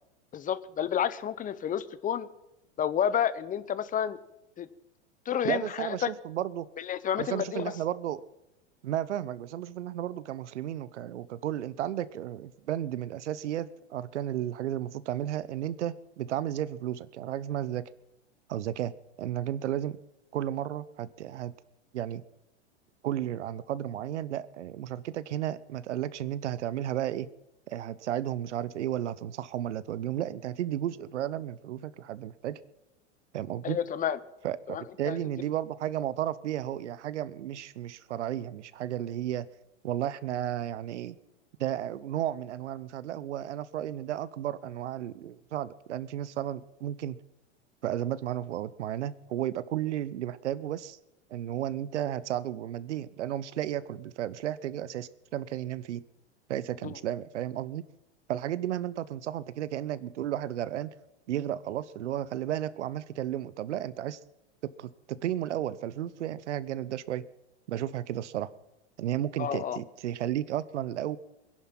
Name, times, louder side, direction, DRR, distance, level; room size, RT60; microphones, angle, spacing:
voice 1, 0.3-2.3 2.8-4.2 4.6-4.7 5.3-6.1 6.8-7.7 33.6-34.2 34.7-35.2 56.8-57.0 69.4-69.8, left 9 dB, 25° left, 16 dB, 0.7 m, -30 dB
voice 2, 5.4-6.7 7.2-8.2 8.8-17.9 18.5-18.9 19.2-20.0 20.3-21.5 21.9-22.2 23.0-27.3 27.7-32.6 33.3-33.8 34.4-39.5 39.8-41.2 41.6-47.2 47.8-51.0 51.3-56.0 56.5-57.8 58.3-60.9 61.3-64.2 64.8-67.2 67.7-68.5 69.0-71.2, right 11 dB, 80° right, 18 dB, 0.9 m, -33 dB
21.5 x 11.0 x 6.0 m, 0.90 s
hypercardioid pair, 105°, 35 cm